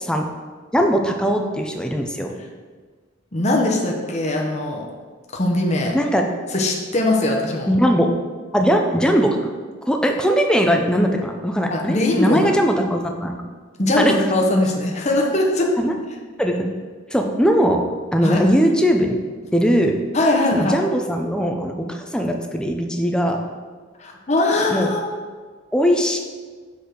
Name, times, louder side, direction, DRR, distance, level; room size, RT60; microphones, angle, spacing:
voice 1, 0.7-2.3 5.9-6.3 7.7-8.1 8.5-9.5 9.9-13.4 14.0-14.1 15.8-15.9 16.4-16.7 17.1-17.8 18.1-19.2 19.5-20.0 20.5-23.4 24.7-24.9 25.7-26.2, equal, 5° left, 3 dB, 0.6 m, -19 dB
voice 2, 3.3-4.8 5.3-6.0 6.5-7.7 11.7-12.5 13.8-15.7 18.2-18.4 20.1-20.8 24.0-25.1, left 1 dB, 35° left, 0 dB, 0.9 m, -20 dB
6.8 x 4.8 x 5.1 m, 1.5 s
head